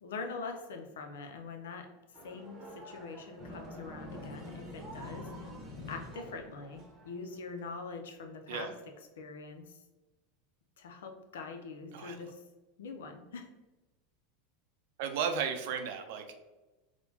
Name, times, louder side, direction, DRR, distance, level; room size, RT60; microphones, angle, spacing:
voice 1, 0.0-1.9 2.2-5.3 5.9-8.7 9.2-9.8 10.8-12.4 12.8-13.5, left 4 dB, 90° left, 5 dB, 0.5 m, -43 dB
sound 1, 2.1-7.9, right 2 dB, 35° right, 0.8 m, -51 dB
sound 2, 3.4-7.3, left 2 dB, 45° left, 0.9 m, -46 dB
voice 2, 15.0-16.4, right 7 dB, 65° right, 6 dB, 0.5 m, -34 dB
4.2 x 2.2 x 2.7 m, 1.1 s
supercardioid pair, 120°, 0 cm